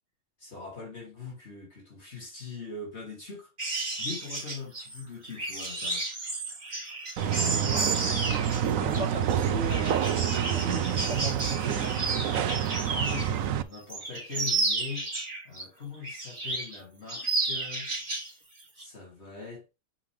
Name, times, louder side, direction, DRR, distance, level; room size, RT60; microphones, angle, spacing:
voice 1, 0.4-3.5 4.0-6.1 12.9-15.1 15.4-18.4 18.7-19.8, left 4 dB, 55° left, 3.0 m, -42 dB
sound 1, 3.6-13.4 13.7-15.6 16.0-16.8 17.1-18.3 18.6-18.8, right 2 dB, 40° right, 2.6 m, -32 dB
sound 2, 7.2-13.6, right 9 dB, 85° right, 1.1 m, -28 dB
voice 2, 7.3-7.9 8.8-12.3, right 3 dB, 60° right, 2.4 m, -37 dB
7.3 x 5.2 x 3.4 m
omnidirectional pair, 1.4 m